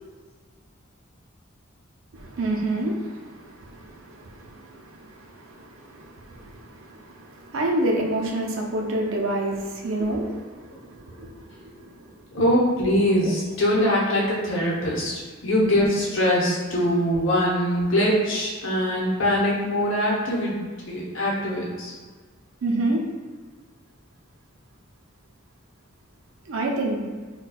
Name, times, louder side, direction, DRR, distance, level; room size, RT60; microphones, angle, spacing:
voice 1, 2.1-11.9 22.6-23.0 26.5-27.1, right 1 dB, 80° right, 0 dB, 0.5 m, -28 dB
voice 2, 12.3-20.5 20.9-21.9, equal, 70° left, -4 dB, 0.8 m, -23 dB
4.0 x 2.2 x 2.3 m, 1.4 s
head